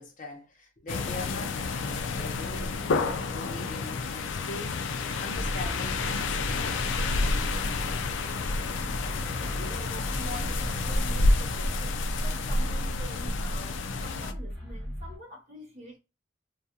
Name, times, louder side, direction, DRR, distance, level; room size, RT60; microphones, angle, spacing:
voice 1, 0.0-2.9 3.3-6.9, left 2 dB, 45° left, 0.8 m, -42 dB
sound 1, 0.9-14.3, left 3 dB, 75° left, 0.4 m, -29 dB
sound 2, 2.4-11.8, right 2 dB, 75° right, 0.9 m, -52 dB
sound 3, 5.3-15.1, equal, 5° left, 1.0 m, -37 dB
voice 2, 9.5-16.0, equal, 35° right, 0.7 m, -45 dB
2.4 x 2.3 x 2.7 m
head